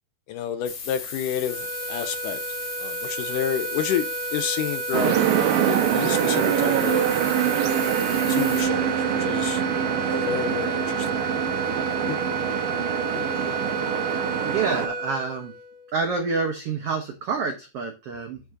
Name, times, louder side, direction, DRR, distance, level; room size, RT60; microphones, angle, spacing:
voice 1, 0.3-2.4 2.8-7.1 8.3-9.6 10.1-11.1 12.0-12.2 13.1-13.3, left 9 dB, 80° left, 2.1 m, -30 dB
sound 1, 0.6-8.6, left 6 dB, 55° left, 2.8 m, -36 dB
sound 2, 1.4-16.0, right 3 dB, 50° right, 1.7 m, -31 dB
sound 3, 4.9-14.9, right 10 dB, 85° right, 2.4 m, -24 dB
voice 2, 14.4-15.5 15.9-18.4, right 4 dB, 70° right, 1.4 m, -28 dB
11.5 x 4.7 x 2.6 m
omnidirectional pair, 4.0 m